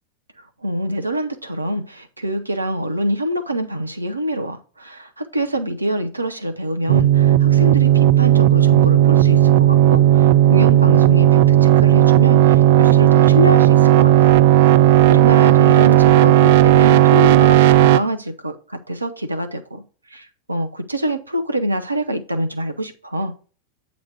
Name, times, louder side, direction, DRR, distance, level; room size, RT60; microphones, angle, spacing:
voice 1, 0.6-14.4 15.1-23.3, equal, 80° right, 0.7 m, -25 dB
sound 1, 6.9-18.0, right 12 dB, 50° right, 0.3 m, -13 dB
7.8 x 4.1 x 4.3 m
figure-of-eight pair, 90°, 0 cm